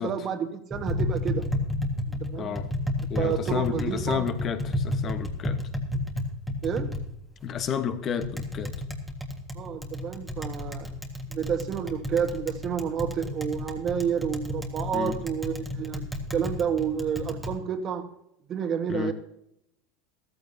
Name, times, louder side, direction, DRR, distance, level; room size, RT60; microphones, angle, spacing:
voice 1, 0.0-1.5 2.1-2.5 3.2-4.3 6.6-6.9 9.5-10.9 11.3-16.1 16.3-18.1 18.5-19.1, right 8 dB, 30° right, 1.5 m, -30 dB
Tap, 0.7-17.5, left 1 dB, ahead, 1.6 m, -32 dB
voice 2, 2.4-2.7 3.1-5.6 7.4-8.7 14.9-15.2 18.9-19.1, left 7 dB, 30° left, 1.2 m, -31 dB
14.5 x 14.0 x 2.8 m
supercardioid pair, 145°, 0 cm